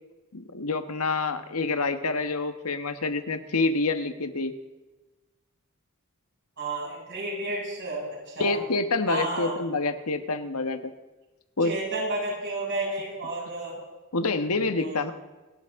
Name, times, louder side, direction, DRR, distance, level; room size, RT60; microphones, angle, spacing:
voice 1, 0.3-4.5 8.4-10.9 11.6-11.7 14.1-15.1, left 3 dB, 85° left, 8 dB, 1.4 m, -27 dB
voice 2, 6.6-8.6 9.1-9.5 11.6-13.8 14.7-15.1, right 2 dB, 55° right, -4 dB, 7.3 m, -32 dB
28.5 x 12.5 x 3.7 m, 1.2 s
head